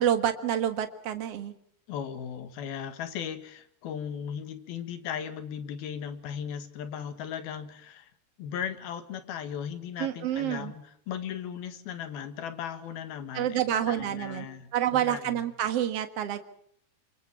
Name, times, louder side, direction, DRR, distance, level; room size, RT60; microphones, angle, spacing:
voice 1, 0.0-1.5 10.0-10.7 13.3-14.5 14.7-16.4, right 10 dB, 50° right, 9 dB, 1.9 m, -28 dB
voice 2, 1.9-8.1 8.4-15.5, left 8 dB, 70° left, 10 dB, 3.4 m, -37 dB
26.5 x 22.5 x 6.0 m, 0.67 s
omnidirectional pair, 4.7 m